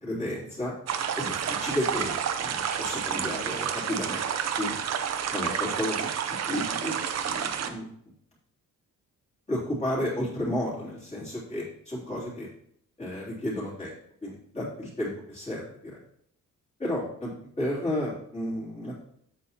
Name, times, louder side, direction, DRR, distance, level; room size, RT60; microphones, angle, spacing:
voice 1, 0.0-0.7 1.2-4.2 4.6-4.8 5.3-6.1 6.5-7.9 9.5-12.5 13.0-13.9 14.2-16.0 16.8-19.0, left 1 dB, 20° left, -7 dB, 3.3 m, -32 dB
sound 1, 0.9-7.7, right 8 dB, 50° right, 0.7 m, -30 dB
8.3 x 8.0 x 2.9 m, 0.67 s
wide cardioid pair, 175°, 33 cm